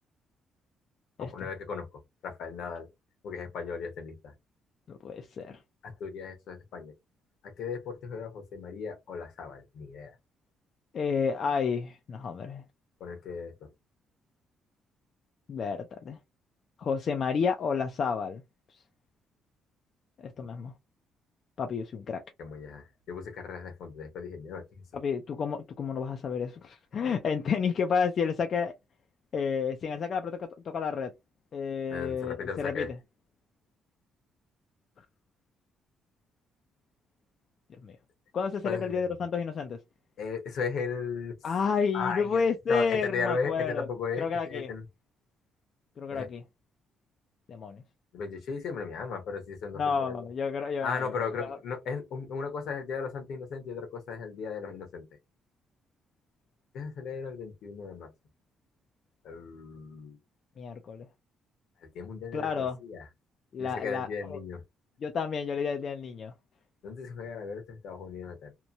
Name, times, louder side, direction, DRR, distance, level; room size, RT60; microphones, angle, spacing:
voice 1, 1.2-2.9 3.2-4.3 5.8-6.9 7.4-10.2 13.0-13.7 22.4-24.8 31.9-32.9 38.6-39.1 40.2-41.4 41.9-44.8 46.1-46.3 48.1-50.3 50.8-55.1 56.7-58.1 59.2-60.2 61.8-63.1 63.6-64.6 66.8-68.5, left 5 dB, 70° left, 1.0 m, -36 dB
voice 2, 4.9-5.6 10.9-12.6 15.5-16.2 16.8-18.4 20.2-20.7 21.6-22.2 24.9-28.7 29.3-31.1 31.5-32.8 37.8-38.0 38.3-39.8 41.4-43.9 44.2-44.7 46.0-46.4 47.5-47.8 49.8-51.0 51.4-51.6 60.6-61.1 62.3-62.8 63.5-64.4 65.0-66.3, left 6 dB, 50° left, 0.4 m, -30 dB
2.9 x 2.1 x 2.5 m
cardioid pair, 125°, 0 cm